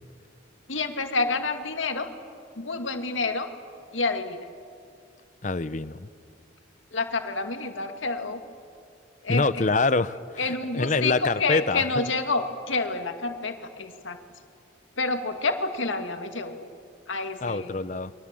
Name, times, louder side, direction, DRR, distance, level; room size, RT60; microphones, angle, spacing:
voice 1, 0.7-2.1 2.6-3.5 3.9-4.4 6.9-8.4 9.2-9.7 10.4-14.2 15.0-16.7 17.1-17.8, left 3 dB, 85° left, 6 dB, 2.1 m, -28 dB
voice 2, 5.4-6.1 9.3-12.1 17.4-18.1, left 3 dB, 40° left, 15 dB, 0.7 m, -26 dB
29.5 x 23.0 x 7.6 m, 2.3 s
head